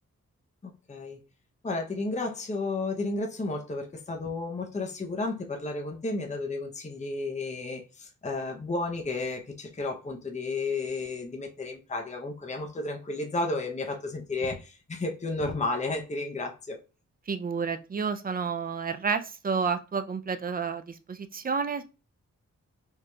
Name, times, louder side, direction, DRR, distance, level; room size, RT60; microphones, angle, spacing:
voice 1, 0.6-1.2 1.6-16.8, left 3 dB, 25° left, 2 dB, 0.7 m, -32 dB
voice 2, 17.3-21.8, right 5 dB, 30° right, 10 dB, 0.4 m, -30 dB
4.7 x 2.8 x 2.3 m, 0.31 s
cardioid pair, 85°, 30 cm